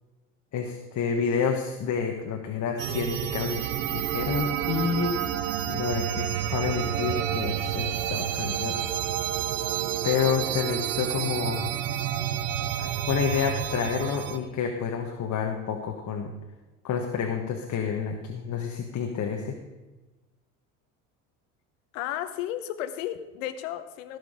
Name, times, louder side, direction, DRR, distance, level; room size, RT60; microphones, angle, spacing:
voice 1, 0.5-5.2 5.7-8.9 10.0-11.7 12.8-16.3 16.8-19.6, left 6 dB, 50° left, 3 dB, 1.4 m, -29 dB
sound 1, 2.8-14.4, right 10 dB, 90° right, 0.8 m, -29 dB
voice 2, 21.9-24.2, left 12 dB, 80° left, 11 dB, 1.0 m, -33 dB
17.0 x 6.4 x 4.9 m, 1.1 s
hypercardioid pair, 70°, 38 cm